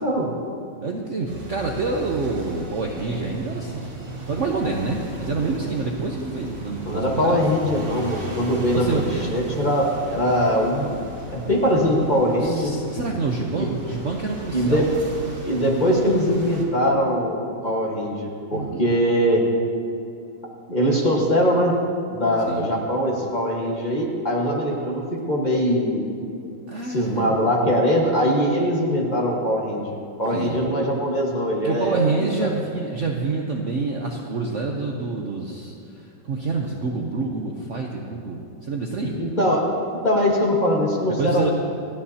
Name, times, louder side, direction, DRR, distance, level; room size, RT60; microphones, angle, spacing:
voice 1, 0.8-3.9 4.2-7.4 8.7-9.4 12.4-14.9 18.5-18.9 22.4-22.7 26.7-27.4 30.3-30.6 31.6-39.2 41.0-41.5, right 3 dB, 55° right, 0 dB, 0.9 m, -27 dB
sound 1, 1.2-16.6, right 1 dB, 30° right, 2.3 m, -37 dB
voice 2, 6.9-9.0 9.3-11.0 11.3-12.7 13.6-13.7 14.5-14.9 15.4-19.4 20.7-21.7 22.1-26.1 26.9-32.5 39.1-39.6 40.0-41.5, equal, 25° left, -2 dB, 1.5 m, -22 dB
28.0 x 9.8 x 2.8 m, 2.5 s
omnidirectional pair, 2.0 m